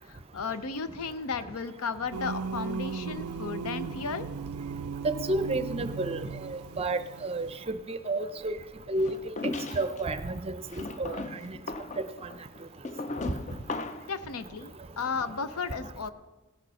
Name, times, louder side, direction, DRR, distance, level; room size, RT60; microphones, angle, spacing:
voice 1, 0.1-4.3 14.1-16.1, left 5 dB, 75° left, 12 dB, 0.7 m, -34 dB
Singing, 2.1-7.6, right 5 dB, 75° right, 0.4 m, -37 dB
voice 2, 5.0-7.5 7.9-8.6 8.9-9.1 9.4-10.4 11.0-11.5, right 2 dB, 25° right, 11 dB, 0.5 m, -31 dB
sound 1, 9.0-10.0 10.7-14.2, left 3 dB, 30° left, 0.5 m, -37 dB
17.0 x 6.7 x 5.6 m, 1.2 s
head